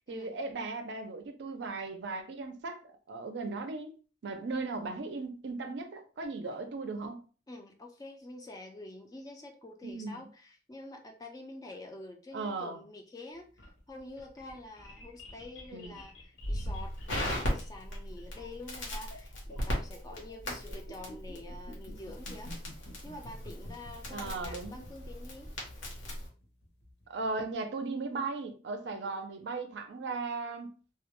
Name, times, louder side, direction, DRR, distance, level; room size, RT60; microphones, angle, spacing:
voice 1, 0.1-4.0 4.2-7.2 9.8-10.2 12.3-12.8 15.7-16.0 24.1-24.8 27.1-30.7, right 3 dB, 60° right, 0.4 m, -37 dB
voice 2, 7.5-22.5 23.0-25.5 28.8-29.3, left 2 dB, 20° left, 0.3 m, -47 dB
sound 1, 13.3-27.4, left 1 dB, 55° left, 0.7 m, -51 dB
Crackle, 16.4-26.3, equal, 80° left, 0.9 m, -38 dB
2.2 x 2.1 x 2.9 m
head